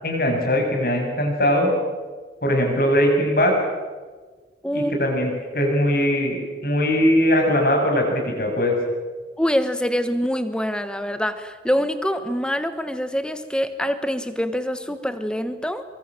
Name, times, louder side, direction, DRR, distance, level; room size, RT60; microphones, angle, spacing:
voice 1, 0.0-1.7 2.4-3.5 4.7-6.4 6.6-8.7, equal, 55° left, 2 dB, 7.6 m, -20 dB
voice 2, 9.4-15.8, equal, 5° left, 10 dB, 1.3 m, -25 dB
24.5 x 24.0 x 7.7 m, 1.4 s
head